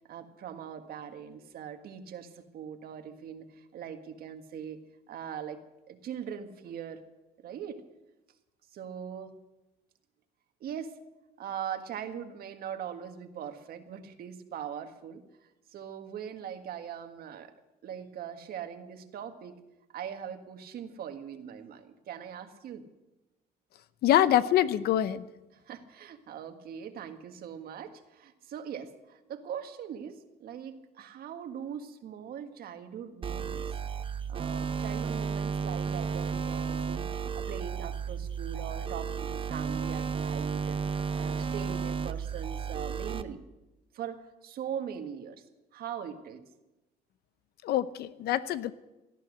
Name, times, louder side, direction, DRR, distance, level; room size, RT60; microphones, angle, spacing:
voice 1, 0.1-4.8 5.1-7.0 7.4-7.8 8.7-9.4 10.6-11.0 11.4-15.2 15.7-17.5 17.8-19.6 19.9-22.8 25.5-33.8 34.3-40.8 41.1-43.4 43.9-45.4 45.7-46.5, right 8 dB, 65° right, 7 dB, 1.7 m, -41 dB
voice 2, 24.0-25.3 47.6-48.7, left 12 dB, 70° left, 15 dB, 0.8 m, -25 dB
sound 1, 33.2-43.2, right 6 dB, 30° right, 0.8 m, -33 dB
18.0 x 12.5 x 6.5 m, 1.0 s
cardioid pair, 110°, 17 cm